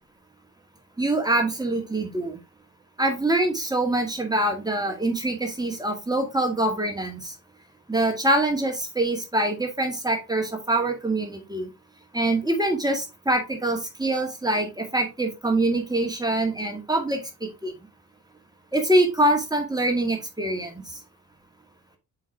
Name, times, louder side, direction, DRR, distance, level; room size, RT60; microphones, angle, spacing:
voice 1, 1.0-2.4 3.0-7.3 7.9-11.7 12.1-17.7 18.7-21.0, right 1 dB, 10° right, 3 dB, 2.2 m, -24 dB
7.0 x 4.7 x 3.5 m, 0.25 s
figure-of-eight pair, 40°, 45 cm